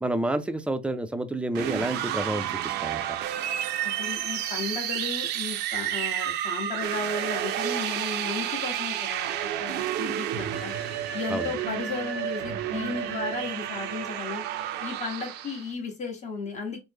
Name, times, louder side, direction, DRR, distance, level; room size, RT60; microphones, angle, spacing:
voice 1, 0.0-3.2 11.3-11.5, right 1 dB, 5° right, 0.4 m, -29 dB
sound 1, 1.5-15.7, right 11 dB, 80° right, 0.5 m, -31 dB
voice 2, 3.8-10.7 11.1-14.4 14.8-16.8, left 4 dB, 45° left, 1.3 m, -35 dB
3.1 x 2.1 x 3.4 m
cardioid pair, 110°, 17 cm